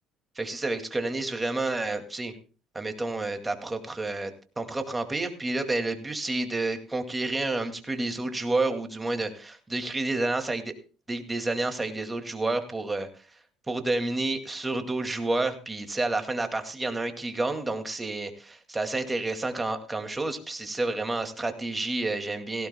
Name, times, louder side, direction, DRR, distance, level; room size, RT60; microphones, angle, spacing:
voice 1, 0.4-2.3 2.7-10.7 11.1-13.1 13.7-22.7, right 2 dB, 15° right, 6 dB, 2.2 m, -30 dB
17.5 x 16.0 x 2.2 m, 0.36 s
supercardioid pair, 90°, 0 cm